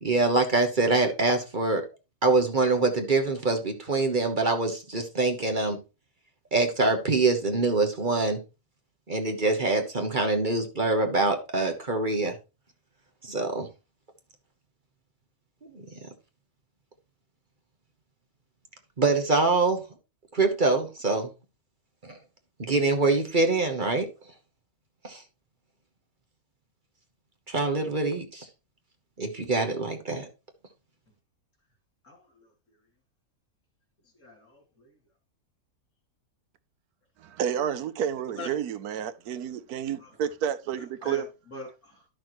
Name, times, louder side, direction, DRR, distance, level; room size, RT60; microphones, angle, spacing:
voice 1, 0.0-1.9 2.2-5.8 6.5-8.4 9.1-12.3 13.2-13.7 15.6-15.8 19.0-19.8 20.3-21.3 22.0-22.2 22.6-24.1 25.0-25.2 27.5-28.4 29.2-30.3, right 3 dB, 35° right, 1.2 m, -24 dB
voice 2, 32.0-32.5 34.1-35.0 38.4-38.6 40.0-40.1 40.8-42.1, left 1 dB, 75° left, 3.4 m, -43 dB
voice 3, 37.2-41.3, right 9 dB, 90° right, 1.2 m, -30 dB
11.0 x 6.3 x 3.1 m
omnidirectional pair, 1.5 m